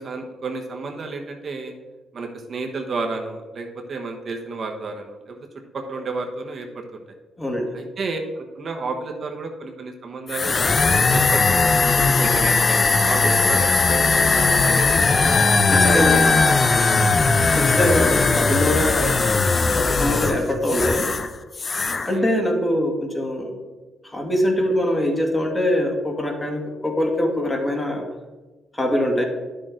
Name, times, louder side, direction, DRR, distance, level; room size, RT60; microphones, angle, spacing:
voice 1, 0.0-1.7 2.1-5.4 5.7-7.0 7.7-10.6 11.1-11.7 12.0-14.1 14.3-15.3 15.8-17.3 21.9-22.3, right 3 dB, 50° right, 2 dB, 1.2 m, -31 dB
voice 2, 7.4-7.7 12.0-12.4 15.7-16.2 17.6-19.2 19.8-21.1 22.1-23.5 24.0-28.0 28.7-29.2, left 1 dB, 15° left, 2 dB, 1.9 m, -23 dB
sound 1, 10.3-21.3 21.5-22.1, left 4 dB, 35° left, 0.6 m, -18 dB
10.5 x 6.4 x 3.8 m, 1.2 s
cardioid pair, 90°, 0 cm